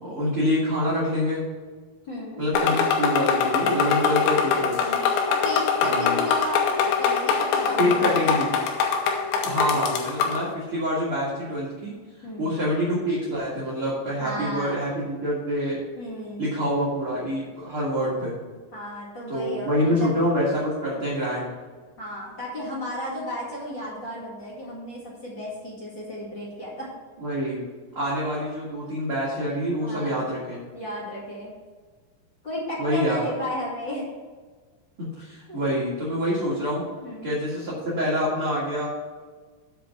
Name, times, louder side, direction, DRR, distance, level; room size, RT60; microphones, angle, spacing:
voice 1, 0.0-1.4 2.4-4.9 5.8-6.2 7.8-8.5 9.4-11.9 12.4-15.8 16.4-18.3 19.3-21.5 27.2-27.6 27.9-30.6 32.8-33.2 35.0-36.8 37.2-38.9, equal, 45° right, -7 dB, 1.7 m, -26 dB
voice 2, 2.1-2.4 4.8-8.5 9.7-9.8 12.2-12.6 14.2-14.9 16.0-16.6 18.7-20.1 22.0-26.9 29.8-30.2 30.7-31.5 32.4-34.0 35.5-35.7 37.0-37.3, equal, 40° left, -6 dB, 1.8 m, -34 dB
sound 1, 2.5-10.4, left 6 dB, 80° left, 3.3 m, -23 dB
7.8 x 5.2 x 7.2 m, 1.4 s
omnidirectional pair, 5.4 m